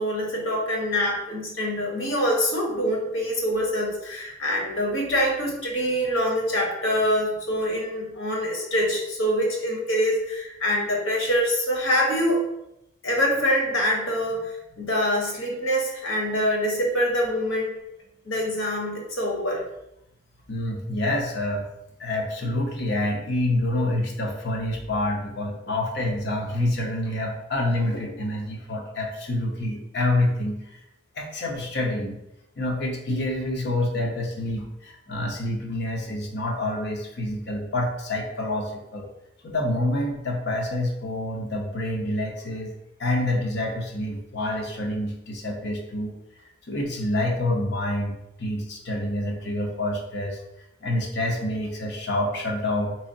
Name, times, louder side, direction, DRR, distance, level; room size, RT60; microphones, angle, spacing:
voice 1, 0.0-12.4 13.0-17.7 18.2-19.6, equal, 80° left, -1 dB, 1.0 m, -25 dB
voice 2, 20.5-21.7 22.0-30.6 31.2-32.2 32.6-39.1 39.4-42.7 43.0-46.2 46.7-50.4 50.8-53.0, left 1 dB, 55° left, 0 dB, 0.7 m, -27 dB
3.7 x 3.1 x 2.6 m, 0.85 s
head